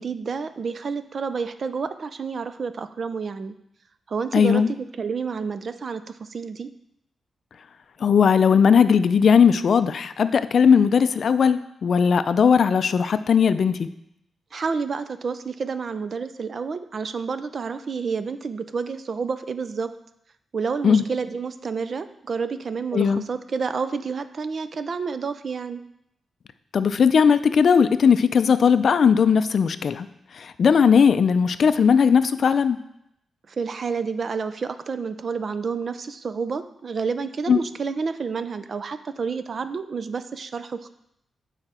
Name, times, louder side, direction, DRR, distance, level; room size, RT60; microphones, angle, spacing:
voice 1, 0.0-3.5 4.1-6.7 14.5-19.9 20.5-25.8 33.5-40.9, right 5 dB, 50° right, 11 dB, 0.4 m, -29 dB
voice 2, 4.3-4.7 8.0-13.9 20.8-21.0 22.9-23.2 26.7-30.1 30.6-32.8 37.5-37.6, left 6 dB, 60° left, 12 dB, 0.4 m, -18 dB
8.8 x 4.9 x 4.2 m, 0.77 s
cardioid pair, 105°, 0 cm